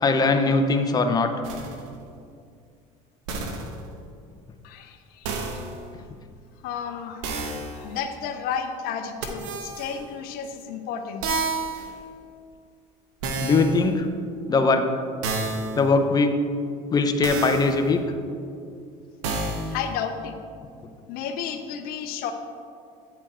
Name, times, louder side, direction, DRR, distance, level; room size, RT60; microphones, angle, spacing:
voice 1, 0.0-1.3 13.4-14.1 14.5-14.9 15.8-16.4 16.9-18.0, left 3 dB, 25° left, 6 dB, 0.6 m, -21 dB
sound 1, 1.4-1.8 3.3-3.8 5.2-5.8 7.2-7.8 9.2-9.9 11.2-11.9 13.2-13.9 15.2-15.8 17.2-17.8 19.2-19.8, right 3 dB, 85° right, 0.9 m, -29 dB
voice 2, 4.6-5.6 6.6-11.3 19.7-20.4 21.1-22.3, left 7 dB, 65° left, 7 dB, 0.6 m, -32 dB
9.1 x 4.3 x 4.3 m, 2.4 s
supercardioid pair, 90°, 17 cm